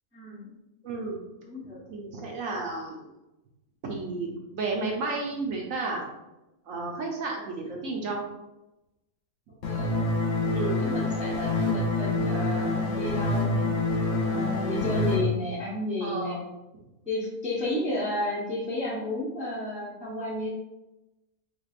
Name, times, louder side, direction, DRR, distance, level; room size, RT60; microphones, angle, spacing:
voice 1, 0.1-0.5 1.4-1.8 9.7-10.0 10.8-13.7 14.2-16.4 17.1-20.5, left 1 dB, 5° right, -6 dB, 0.7 m, -32 dB
voice 2, 0.8-1.2 1.6-3.1 3.8-6.1 6.6-8.2 10.5-10.8 16.0-16.4, right 3 dB, 65° right, 0 dB, 1.0 m, -32 dB
sound 1, 9.6-15.2, left 2 dB, 55° left, 0.9 m, -26 dB
4.5 x 3.2 x 2.4 m, 0.96 s
omnidirectional pair, 1.6 m